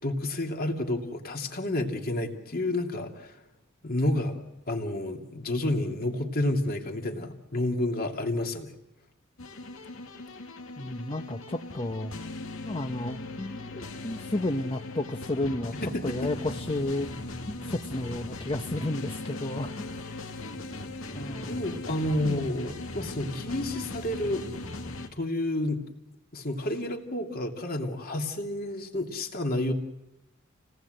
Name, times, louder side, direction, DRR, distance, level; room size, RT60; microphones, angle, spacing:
voice 1, 0.0-3.4 3.8-8.8 15.8-16.3 21.5-24.5 25.2-25.8 26.3-29.7, left 1 dB, 45° left, 3 dB, 2.8 m, -30 dB
sound 1, 9.4-25.1, left 2 dB, 70° left, 2.4 m, -39 dB
voice 2, 10.8-12.1 12.6-15.7 16.0-19.8 21.1-21.6 22.2-22.6, left 1 dB, 25° left, 4 dB, 1.0 m, -32 dB
28.5 x 18.5 x 8.0 m, 0.97 s
head